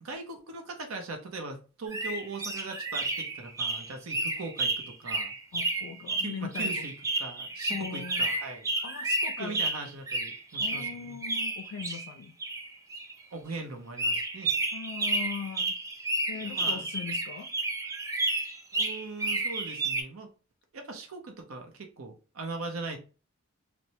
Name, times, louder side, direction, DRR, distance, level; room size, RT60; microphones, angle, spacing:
voice 1, 0.0-5.3 6.2-6.9 7.2-8.7 9.4-11.2 13.3-14.6 16.3-16.8 18.7-20.3 20.7-23.0, right 3 dB, 80° right, 0.7 m, -40 dB
sound 1, 1.9-12.1 12.4-13.2 13.5-13.6 14.0-20.0, right 2 dB, 15° right, 0.3 m, -31 dB
voice 2, 5.5-6.9 7.7-8.3 8.8-9.6 10.6-12.3 14.7-15.8 16.3-17.5, left 6 dB, 85° left, 0.3 m, -40 dB
3.0 x 2.1 x 2.7 m
head